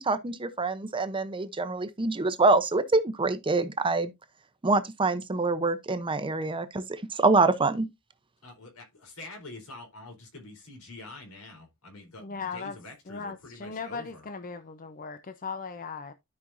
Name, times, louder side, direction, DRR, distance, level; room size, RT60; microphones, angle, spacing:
voice 1, 0.0-4.1 4.6-7.9, right 3 dB, 25° right, 0.7 m, -25 dB
voice 2, 8.4-14.2, left 2 dB, 80° left, 4.0 m, -46 dB
voice 3, 12.2-12.8 13.1-16.1, left 5 dB, 40° left, 0.7 m, -38 dB
13.0 x 5.3 x 2.6 m
head